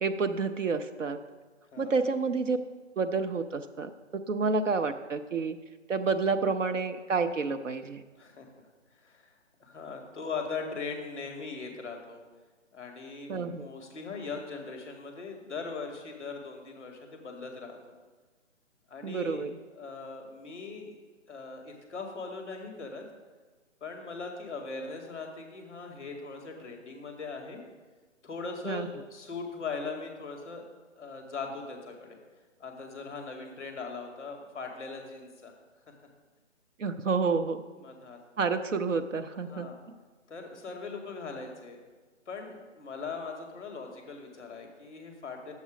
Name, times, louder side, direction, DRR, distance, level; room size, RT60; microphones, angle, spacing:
voice 1, 0.0-1.2 1.8-2.6 3.0-5.6 5.9-8.0 13.3-13.7 19.0-19.6 28.7-28.9 36.8-37.6 38.4-39.7, right 4 dB, 75° right, 8 dB, 0.9 m, -29 dB
voice 2, 1.7-2.0 8.2-8.5 8.9-12.2 12.7-18.0 18.9-21.0 21.3-23.0 23.8-27.6 28.2-30.7 30.9-32.2 32.6-35.6 35.9-36.0 37.8-38.2 39.5-39.8 40.3-41.8 42.2-45.5, left 4 dB, 10° left, 3 dB, 1.4 m, -40 dB
9.3 x 7.1 x 5.0 m, 1.3 s
hypercardioid pair, 170°, 38 cm